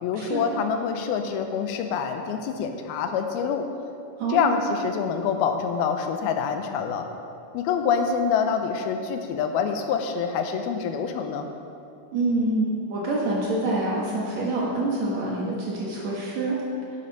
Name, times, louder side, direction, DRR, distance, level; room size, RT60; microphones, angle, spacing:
voice 1, 0.0-3.7 4.3-7.1 7.5-11.5, left 6 dB, 85° left, 6 dB, 2.6 m, -26 dB
voice 2, 4.2-4.5 12.1-16.6, right 2 dB, 60° right, -5 dB, 2.2 m, -26 dB
10.0 x 6.7 x 5.5 m, 2.5 s
omnidirectional pair, 4.3 m